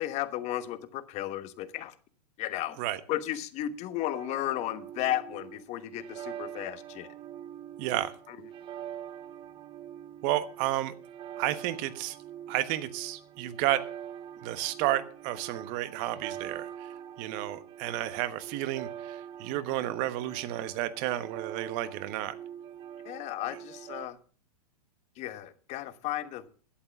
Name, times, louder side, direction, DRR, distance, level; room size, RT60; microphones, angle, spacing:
voice 1, 0.0-1.9 2.4-2.8 3.1-7.1 8.3-8.4 23.0-24.2 25.2-26.5, left 13 dB, 35° left, 13 dB, 1.2 m, -34 dB
sound 1, 4.1-24.1, right 10 dB, 25° right, 0.7 m, -44 dB
voice 2, 7.8-8.1 10.2-10.9 11.4-12.2 12.5-13.8 14.4-16.9 17.2-22.4, right 14 dB, 40° right, 14 dB, 1.2 m, -31 dB
11.5 x 7.9 x 7.1 m, 0.42 s
hypercardioid pair, 120°, 20 cm